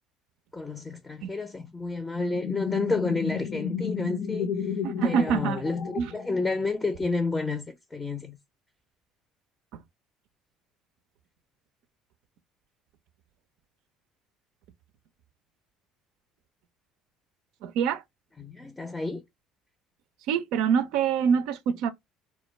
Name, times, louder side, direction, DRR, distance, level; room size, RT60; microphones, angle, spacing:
voice 1, 0.5-4.5 5.0-8.4 18.4-19.2, left 3 dB, 20° left, 0.5 m, -30 dB
sound 1, 2.2-6.6, left 7 dB, 65° left, 0.7 m, -32 dB
voice 2, 4.8-5.6 6.0-6.1 9.7-9.8 17.6-18.0 20.3-21.9, right 7 dB, 70° right, 0.3 m, -25 dB
2.1 x 2.1 x 3.1 m
hypercardioid pair, 65°, 0 cm